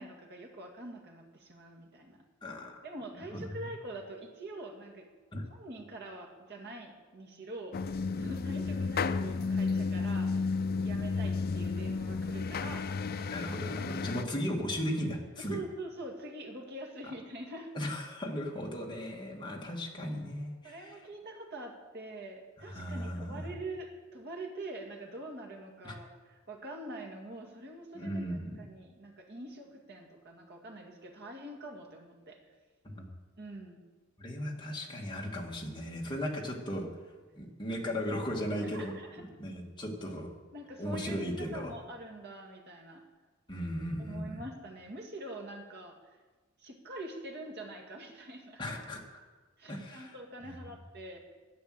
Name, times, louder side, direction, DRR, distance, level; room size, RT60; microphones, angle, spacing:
voice 1, 0.0-2.2 2.8-5.1 5.5-10.5 10.8-12.9 13.2-13.6 14.1-14.3 15.5-17.7 20.6-32.5 33.4-33.8 38.6-39.2 40.5-43.0 44.0-46.0 46.6-48.6 49.6-51.2, right 2 dB, 55° right, 1 dB, 2.3 m, -45 dB
voice 2, 2.4-2.8 3.3-3.7 5.3-5.4 13.3-15.6 17.8-21.0 22.7-23.5 25.8-25.9 27.9-28.6 32.8-33.0 34.2-36.9 37.3-40.3 40.8-41.7 43.5-44.4 48.6-49.0 49.7-50.1, equal, 25° left, -1 dB, 2.1 m, -36 dB
sound 1, 7.7-14.2, left 4 dB, 45° left, 0.5 m, -32 dB
12.0 x 9.3 x 7.8 m, 1.3 s
head